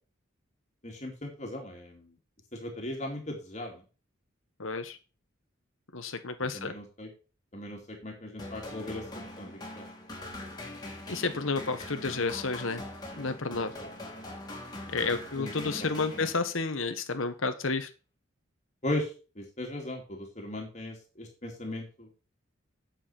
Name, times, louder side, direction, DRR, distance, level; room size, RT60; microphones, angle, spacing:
voice 1, 0.8-2.2 2.5-3.8 6.5-7.1 7.5-9.0 9.4-9.9 13.8-13.9 15.4-15.9 16.1-16.3 18.8-22.1, left 1 dB, 35° left, 0 dB, 2.7 m, -38 dB
voice 2, 4.6-5.0 5.9-6.7 11.1-12.8 13.2-13.7 14.9-17.9, left 4 dB, 85° left, 8 dB, 1.3 m, -31 dB
sound 1, 8.4-16.8, left 1 dB, 20° left, 3.1 m, -42 dB
10.0 x 7.3 x 4.5 m, 0.34 s
head